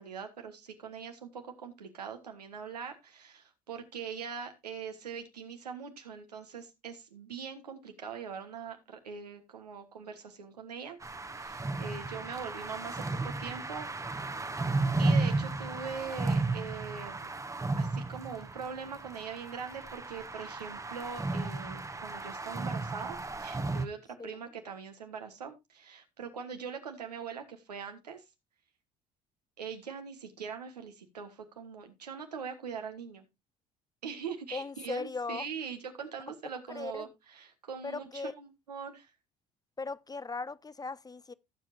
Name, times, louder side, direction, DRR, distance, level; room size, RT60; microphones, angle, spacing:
voice 1, 0.0-11.0 11.4-14.4 15.0-17.3 17.8-28.2 29.6-33.2 34.0-39.1, right 6 dB, 85° right, 1.5 m, -42 dB
sound 1, 11.0-23.9, right 3 dB, 15° right, 1.1 m, -34 dB
voice 2, 34.5-35.5 36.7-37.1 37.8-38.3 39.8-41.3, left 4 dB, 20° left, 0.6 m, -38 dB
17.0 x 7.4 x 2.5 m
figure-of-eight pair, 55°, 20 cm